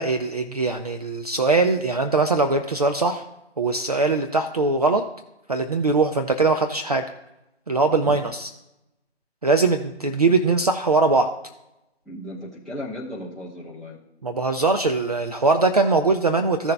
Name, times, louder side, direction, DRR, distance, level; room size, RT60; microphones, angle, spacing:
voice 1, 0.0-3.2 3.6-5.0 5.5-7.1 7.7-8.5 9.4-11.3 14.2-16.7, right 3 dB, 35° right, 5 dB, 0.4 m, -21 dB
voice 2, 12.0-14.0, left 1 dB, ahead, -10 dB, 1.0 m, -35 dB
15.5 x 6.6 x 2.2 m, 0.91 s
figure-of-eight pair, 150°, 34 cm